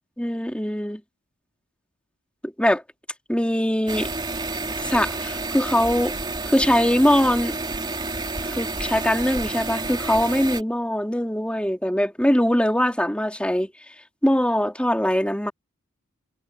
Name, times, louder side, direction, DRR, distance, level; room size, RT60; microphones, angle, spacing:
voice 1, 0.2-1.0 2.4-2.8 3.3-4.1 4.8-6.1 6.5-7.5 8.4-13.7 14.2-15.5, equal, 5° left, 3.1 m, -22 dB
sound 1, 3.9-10.6, right 3 dB, 20° right, 2.8 m, -30 dB
head